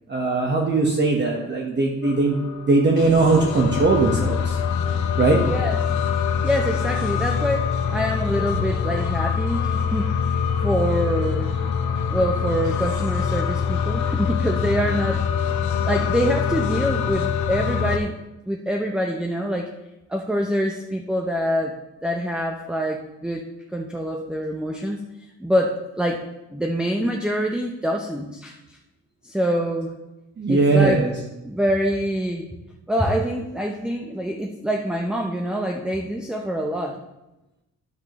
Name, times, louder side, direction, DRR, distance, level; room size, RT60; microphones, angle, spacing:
voice 1, 0.1-4.6 5.2-5.4 8.5-8.6 30.4-31.1, right 3 dB, 35° right, 0 dB, 1.1 m, -20 dB
sound 1, 2.0-18.0, left 7 dB, 75° left, 0.9 m, -24 dB
voice 2, 6.4-10.4 10.6-11.5 12.1-15.3 15.8-18.2 18.5-19.7 20.1-21.7 22.0-23.5 23.7-25.0 25.4-26.2 26.5-28.6 29.2-29.9 30.5-31.0 31.4-32.5 32.9-37.0, equal, 5° right, 2 dB, 0.6 m, -25 dB
10.5 x 7.1 x 3.0 m, 0.98 s
cardioid pair, 90°, 30 cm